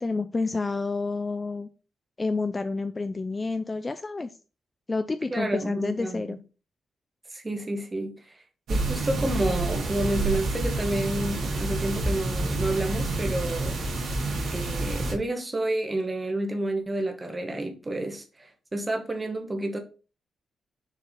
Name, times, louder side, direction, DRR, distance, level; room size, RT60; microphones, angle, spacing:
voice 1, 0.0-1.7 2.2-4.4 4.9-6.4, left 3 dB, 20° left, 0.3 m, -29 dB
voice 2, 5.3-6.3 7.3-8.3 8.7-13.8 14.1-14.2 14.5-19.8, right 1 dB, 15° right, 1.1 m, -30 dB
sound 1, 8.7-15.1, right 2 dB, 80° right, 2.4 m, -28 dB
6.5 x 4.6 x 3.6 m
wide cardioid pair, 170°, 0 cm